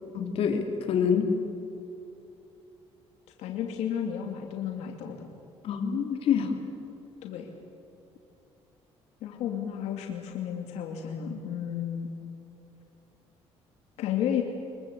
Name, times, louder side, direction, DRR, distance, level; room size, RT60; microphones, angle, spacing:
voice 1, 0.1-1.3 5.6-6.6, left 7 dB, 60° left, 3 dB, 3.2 m, -26 dB
voice 2, 3.4-5.3 7.2-7.5 9.2-12.1 14.0-14.4, left 9 dB, 85° left, 2 dB, 2.5 m, -32 dB
25.0 x 22.0 x 8.3 m, 2.8 s
cardioid pair, 140°, 11 cm